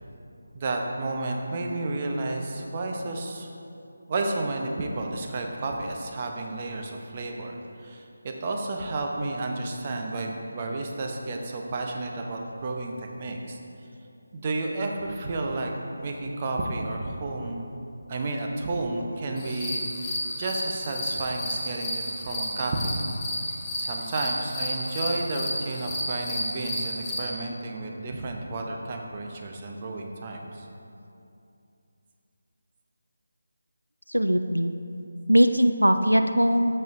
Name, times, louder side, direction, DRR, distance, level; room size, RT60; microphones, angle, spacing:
voice 1, 0.5-3.5 4.1-13.6 14.3-15.7 16.0-17.7 18.1-22.9 23.8-30.7, right 2 dB, 30° right, 1 dB, 0.8 m, -31 dB
sound 1, 19.4-27.2, equal, 10° left, 1.2 m, -32 dB
voice 2, 34.1-34.7 35.3-36.7, equal, 90° right, 8 dB, 0.4 m, -20 dB
12.0 x 7.7 x 2.6 m, 2.6 s
figure-of-eight pair, 155°, 0 cm